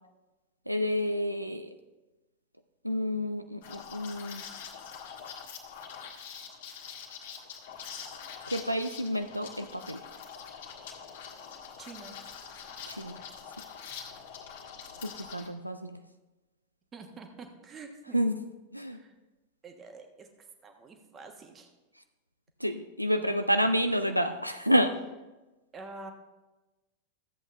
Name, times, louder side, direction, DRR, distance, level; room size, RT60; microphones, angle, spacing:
voice 1, 0.7-1.7 2.8-4.4 8.5-10.0 12.9-13.2 15.0-16.0 18.1-18.3 18.7-19.0 22.6-24.9, equal, 90° right, 8 dB, 0.4 m, -29 dB
Liquid, 3.6-15.5, left 7 dB, 55° left, 1.6 m, -44 dB
voice 2, 11.8-12.2 16.9-18.2 18.9-19.2 19.6-20.3 20.6-21.7 23.2-23.6 25.7-26.1, right 3 dB, 25° right, 5 dB, 1.3 m, -47 dB
13.5 x 8.0 x 3.3 m, 1.1 s
figure-of-eight pair, 90°, 0 cm